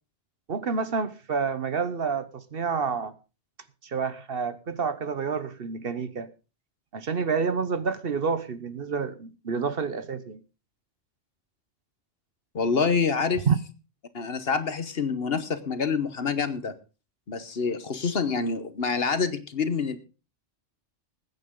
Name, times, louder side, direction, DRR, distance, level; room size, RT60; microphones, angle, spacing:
voice 1, 0.5-3.1 3.8-6.3 6.9-10.4 13.5-13.6, right 5 dB, 55° right, 1.1 m, -28 dB
voice 2, 12.5-13.5 14.1-16.7 17.3-20.0, left 5 dB, 55° left, 1.3 m, -27 dB
20.0 x 9.3 x 3.8 m
omnidirectional pair, 1.2 m